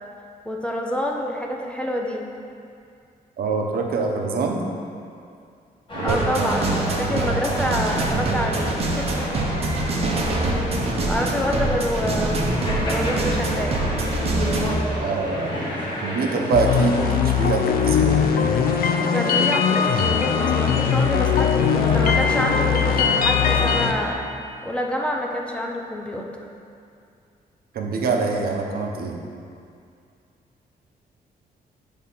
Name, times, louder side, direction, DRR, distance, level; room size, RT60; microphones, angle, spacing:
voice 1, 0.5-2.2 6.0-9.3 11.1-13.8 19.1-24.2 24.6-26.3, equal, 5° left, 0 dB, 0.5 m, -27 dB
voice 2, 3.4-4.6 5.9-6.2 6.9-7.2 9.8-10.2 15.0-18.2 27.7-29.2, right 4 dB, 70° right, 2 dB, 0.8 m, -25 dB
sound 1, 5.9-24.1, left 1 dB, 30° left, 1.4 m, -31 dB
sound 2, 6.1-14.8, right 2 dB, 40° right, 0.8 m, -24 dB
sound 3, 16.5-23.9, left 7 dB, 65° left, 0.5 m, -20 dB
8.4 x 3.5 x 5.5 m, 2.4 s
wide cardioid pair, 155°, 16 cm